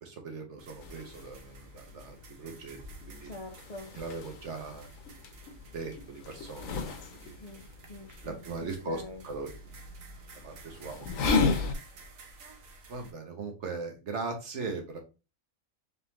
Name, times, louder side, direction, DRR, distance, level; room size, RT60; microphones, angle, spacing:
voice 1, 0.0-2.8 3.0-3.3 4.0-4.9 5.7-6.8 7.1-7.4 8.2-9.8 10.4-11.5 12.9-15.0, right 3 dB, 60° right, 1.2 m, -39 dB
sound 1, 0.6-13.1, right 3 dB, 80° right, 1.3 m, -52 dB
sound 2, 0.8-11.8, left 4 dB, 75° left, 1.2 m, -35 dB
voice 2, 3.2-3.9 7.4-9.3, left 2 dB, 40° left, 0.6 m, -45 dB
4.1 x 3.5 x 2.9 m
omnidirectional pair, 1.4 m